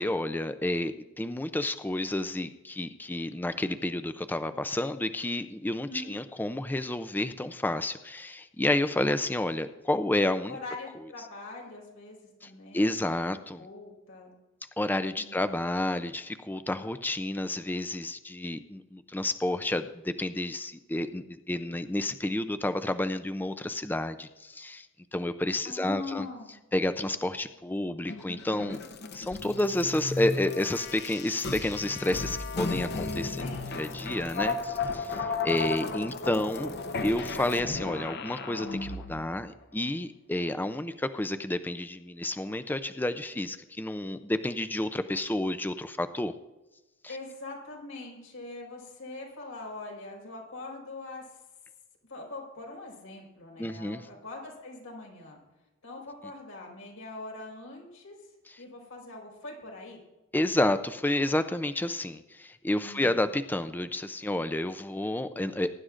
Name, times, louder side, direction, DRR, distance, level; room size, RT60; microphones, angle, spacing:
voice 1, 0.0-10.6 12.4-13.7 14.8-24.9 25.1-26.3 26.7-28.8 29.1-33.4 33.7-46.3 47.0-47.2 53.6-54.1 58.5-58.6 60.3-65.7, left 1 dB, 10° left, 10 dB, 0.4 m, -30 dB
voice 2, 5.8-6.1 10.5-12.2 12.4-13.1 13.6-14.3 15.2-15.4 25.6-26.5 33.4-33.7 47.1-51.3 52.1-55.4 55.8-58.2 58.6-60.0 62.8-63.2, left 2 dB, 90° left, -2 dB, 4.8 m, -42 dB
sound 1, 28.1-39.3, left 3 dB, 55° left, 0.9 m, -34 dB
22.0 x 11.0 x 2.5 m, 1.0 s
head